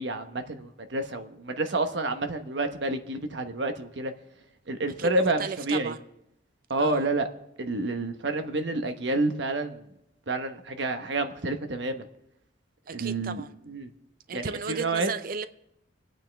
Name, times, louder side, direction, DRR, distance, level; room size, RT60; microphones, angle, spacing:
voice 1, 0.0-4.1 4.7-5.9 6.7-7.3 7.6-9.8 10.3-12.0 12.9-13.9 14.3-15.1, right 2 dB, 65° right, 1.1 m, -29 dB
voice 2, 5.0-6.0 6.8-7.1 12.9-13.5 14.3-15.5, right 5 dB, 50° right, 0.5 m, -35 dB
25.0 x 9.1 x 3.4 m
head